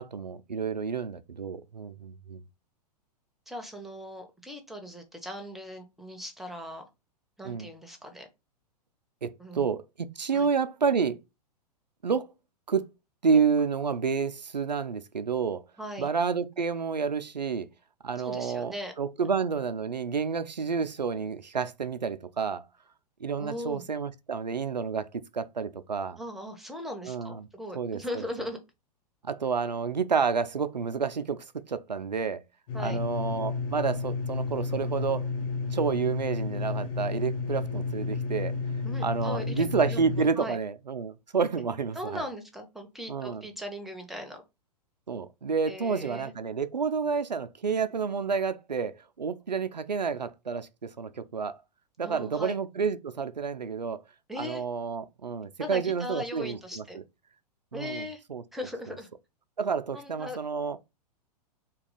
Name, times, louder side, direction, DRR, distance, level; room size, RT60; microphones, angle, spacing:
voice 1, 0.0-2.4 7.4-7.7 9.2-11.2 12.0-12.3 12.7-12.9 13.2-15.6 16.0-17.7 18.0-22.6 23.2-26.2 27.0-27.5 27.7-28.0 29.2-32.4 32.8-35.3 35.7-38.5 39.0-42.2 43.1-43.4 45.1-51.6 52.0-54.0 54.4-56.8 57.7-58.4 59.6-60.8, right 5 dB, 85° right, 0.4 m, -29 dB
voice 2, 3.5-6.9 7.4-8.3 9.4-9.6 10.3-10.5 15.8-16.1 18.2-18.9 19.2-19.4 23.4-23.8 26.2-28.6 32.7-33.0 38.8-40.0 40.4-40.6 41.9-44.4 45.7-46.3 52.0-52.6 54.3-54.6 55.6-57.0 57.7-58.2 58.5-59.1 59.9-60.4, left 1 dB, ahead, 0.5 m, -39 dB
sound 1, 32.7-40.3, left 4 dB, 50° left, 1.1 m, -32 dB
2.8 x 2.3 x 3.8 m
figure-of-eight pair, 105°, 21 cm